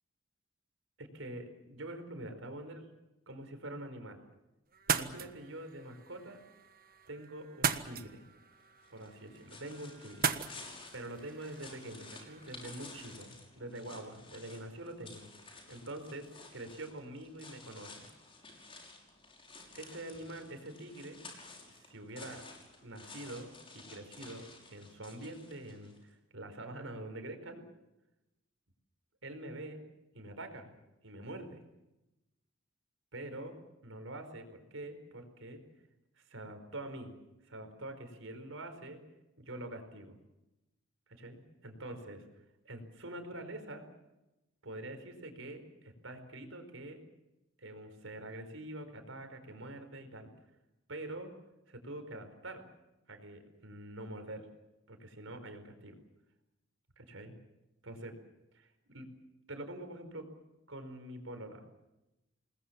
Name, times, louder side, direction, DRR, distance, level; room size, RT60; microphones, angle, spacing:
voice 1, 1.0-2.9 3.3-4.2 4.9-6.4 7.1-8.2 8.9-15.3 15.7-18.1 19.7-21.2 21.8-22.4 22.8-27.6 29.2-29.8 30.1-30.8 31.0-31.6 33.1-33.6 33.8-35.6 36.1-37.1 37.4-39.0 39.4-40.2 41.1-42.2 42.6-43.9 44.6-47.0 47.6-50.3 50.9-51.3 51.7-52.6 53.1-54.5 54.9-56.0 57.0-57.3 57.8-58.1 58.5-59.1 59.5-60.3 60.7-61.6, right 1 dB, 90° right, 7 dB, 4.8 m, -45 dB
sound 1, 4.7-13.1, right 6 dB, 45° right, 1.4 m, -39 dB
sound 2, 8.8-26.0, left 3 dB, 30° left, 5.8 m, -53 dB
28.0 x 20.5 x 7.3 m, 0.96 s
head